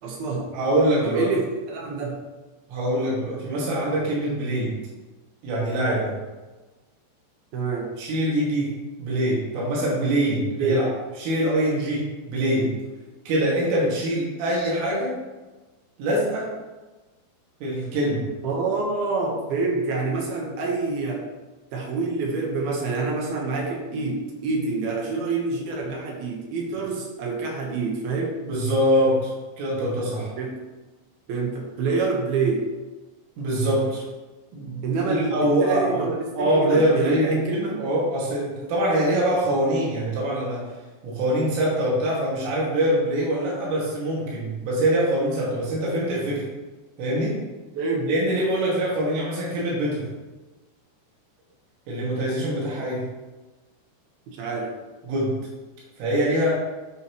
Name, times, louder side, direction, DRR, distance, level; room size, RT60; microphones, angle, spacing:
voice 1, 0.0-0.5 1.0-2.2 7.5-7.9 10.6-10.8 18.4-21.3 21.7-28.4 30.4-30.6 31.3-32.7 34.8-37.8 47.7-48.1 54.3-54.7, right 4 dB, 65° right, -1 dB, 2.7 m, -27 dB
voice 2, 0.5-1.3 2.7-4.7 5.4-6.1 8.0-8.7 9.0-10.9 11.2-12.7 13.3-15.2 16.0-16.5 17.6-18.2 28.4-30.3 33.4-34.0 34.5-36.0 36.4-40.7 41.0-46.4 47.0-47.4 48.1-50.0 51.9-53.1 55.0-55.3 56.0-56.6, right 1 dB, 85° right, -6 dB, 5.0 m, -24 dB
10.0 x 9.2 x 3.2 m, 1.2 s
omnidirectional pair, 5.6 m